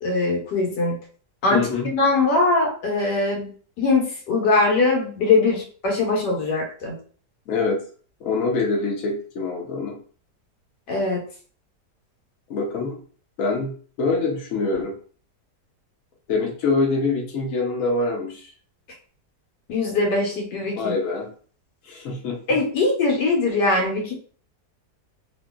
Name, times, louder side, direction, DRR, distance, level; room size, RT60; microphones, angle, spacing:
voice 1, 0.0-1.0 1.4-3.5 3.8-7.0 10.9-11.2 19.7-20.9 22.5-24.1, left 3 dB, 85° left, -1 dB, 1.5 m, -21 dB
voice 2, 1.5-1.9 7.5-7.8 8.2-9.9 12.5-13.0 13.4-13.7 14.0-14.9 16.3-18.5 20.8-21.3 21.9-22.4, left 3 dB, 60° left, 0 dB, 1.0 m, -24 dB
2.9 x 2.8 x 2.2 m, 0.43 s
omnidirectional pair, 1.8 m